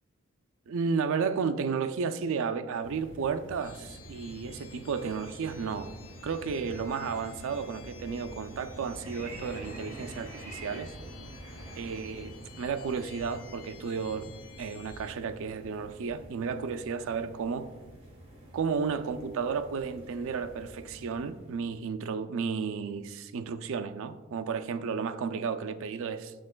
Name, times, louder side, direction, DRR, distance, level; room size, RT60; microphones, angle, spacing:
voice 1, 0.7-5.9 6.2-10.9 11.7-17.7 18.5-26.3, right 5 dB, 65° right, 0.4 m, -33 dB
sound 1, 2.8-21.9, right 1 dB, 30° right, 1.6 m, -47 dB
sound 2, 3.6-15.1, left 9 dB, 85° left, 0.5 m, -54 dB
7.0 x 6.3 x 2.2 m
head